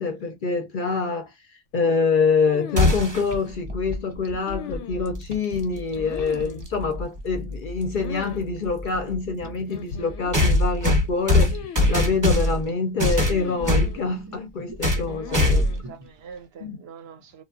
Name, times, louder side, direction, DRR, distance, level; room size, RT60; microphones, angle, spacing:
voice 1, 0.0-1.3 1.7-15.6 16.6-16.8, left 4 dB, 55° left, 0.6 m, -26 dB
sound 1, 2.5-3.2 4.5-5.3 6.0-6.7 8.0-8.4 8.7-8.8 9.7-10.4 11.5-12.3 13.3-14.1 15.1-15.8, left 7 dB, 90° left, 0.9 m, -38 dB
sound 2, 2.8-3.3 5.4-5.5 6.6-6.7 10.3-12.6 13.0-13.9 14.8-15.1 15.3-15.8, left 2 dB, 20° right, 0.8 m, -20 dB
sound 3, 3.3-16.4, left 2 dB, 45° right, 0.3 m, -39 dB
voice 2, 15.3-17.4, right 7 dB, 65° right, 0.8 m, -44 dB
3.0 x 2.2 x 2.4 m
omnidirectional pair, 1.2 m